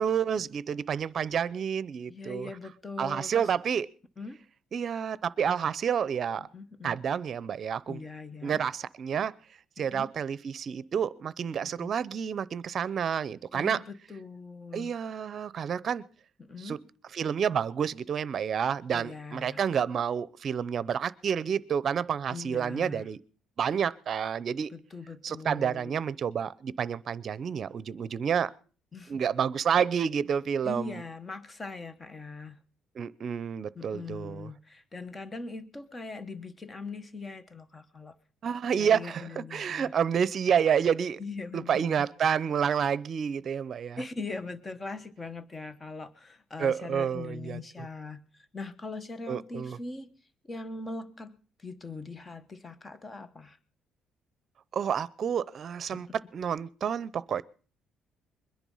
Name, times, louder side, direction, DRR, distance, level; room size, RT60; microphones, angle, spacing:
voice 1, 0.0-2.5 3.0-3.9 4.7-6.5 6.8-8.0 8.4-9.3 9.8-13.8 14.7-16.0 16.6-16.8 17.1-23.2 23.6-24.7 25.2-28.5 29.1-31.0 33.0-34.5 38.4-41.2 41.5-44.0 46.6-47.6 49.3-49.8 54.7-57.4, right 7 dB, 45° right, 0.7 m, -29 dB
voice 2, 2.1-3.5 4.2-4.4 6.5-7.0 7.9-8.6 9.9-10.1 11.8-11.9 13.5-14.9 16.4-16.8 18.9-19.6 22.3-23.1 24.7-26.0 28.9-29.2 30.6-32.6 33.7-38.2 38.8-39.9 41.2-42.0 44.0-50.1 50.4-53.6 55.9-56.0, left 3 dB, 20° left, 1.2 m, -41 dB
22.0 x 10.5 x 5.6 m
cardioid pair, 125°, 0 cm